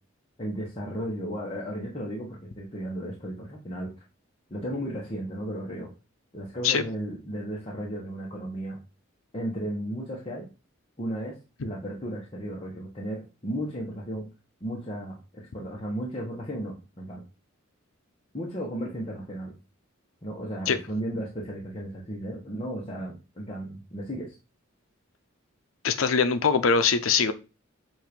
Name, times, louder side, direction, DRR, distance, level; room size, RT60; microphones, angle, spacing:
voice 1, 0.4-3.9 4.5-5.9 6.3-8.8 9.3-10.5 11.0-11.4 11.6-14.3 14.6-17.2 18.3-19.5 20.2-24.3, equal, 30° left, 1.2 m, -34 dB
voice 2, 25.8-27.3, left 5 dB, 85° left, 0.6 m, -22 dB
7.6 x 2.6 x 5.2 m
head